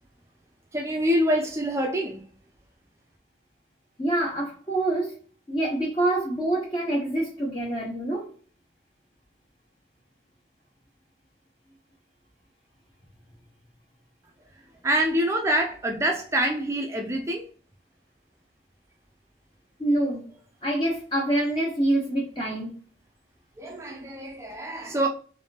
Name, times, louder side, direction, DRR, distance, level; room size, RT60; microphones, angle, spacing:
voice 1, 0.7-2.2 14.8-17.4 23.6-25.1, right 1 dB, 15° right, 0.4 m, -25 dB
voice 2, 4.0-5.1 5.5-8.3 19.8-20.2 20.6-22.7, right 1 dB, 25° left, 0.7 m, -26 dB
3.4 x 3.2 x 2.7 m
head